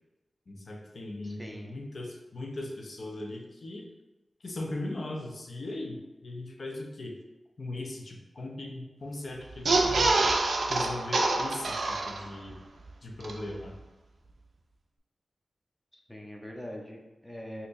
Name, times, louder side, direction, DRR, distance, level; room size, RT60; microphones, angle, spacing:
voice 1, 0.5-3.8 4.4-7.2 7.6-10.3 10.7-12.6 13.0-13.8, left 2 dB, 60° left, 1 dB, 0.6 m, -38 dB
voice 2, 1.2-1.8 16.1-17.7, left 1 dB, 5° left, 0 dB, 0.5 m, -42 dB
sound 1, 9.5-12.5 12.9-13.0 13.2-13.3, right 2 dB, 75° right, 0.4 m, -26 dB
4.2 x 2.6 x 2.5 m, 1.1 s
wide cardioid pair, 90°, 0 cm